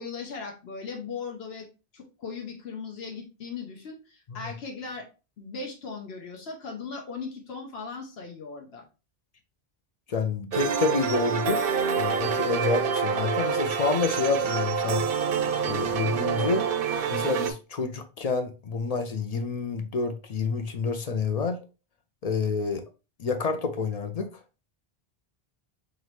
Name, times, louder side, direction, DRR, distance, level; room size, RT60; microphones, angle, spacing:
voice 1, 0.0-1.7 1.9-5.1 5.4-8.9, left 4 dB, 85° left, 1.1 m, -38 dB
voice 2, 10.1-11.7 12.0-15.0 15.6-16.7 17.1-21.6 22.2-22.8 23.2-24.3, left 4 dB, 50° left, 0.5 m, -28 dB
sound 1, 10.5-17.5, right 6 dB, 70° right, 0.7 m, -27 dB
3.8 x 3.1 x 3.1 m
omnidirectional pair, 1.0 m